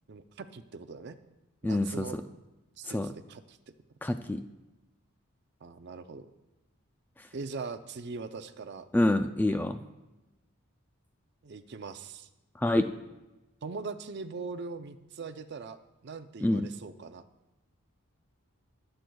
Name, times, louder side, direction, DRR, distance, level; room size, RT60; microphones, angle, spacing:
voice 1, 0.1-1.2 1.6-2.2 2.8-3.6 5.6-6.3 7.3-8.9 11.4-12.3 13.6-15.8 16.0-17.2, right 4 dB, 50° right, 10 dB, 0.5 m, -41 dB
voice 2, 1.6-2.1 2.9-3.1 4.0-4.4 8.9-9.8 12.6-12.8 16.4-16.7, left 1 dB, 10° left, 7 dB, 0.3 m, -26 dB
21.5 x 7.7 x 2.3 m, 1.1 s
head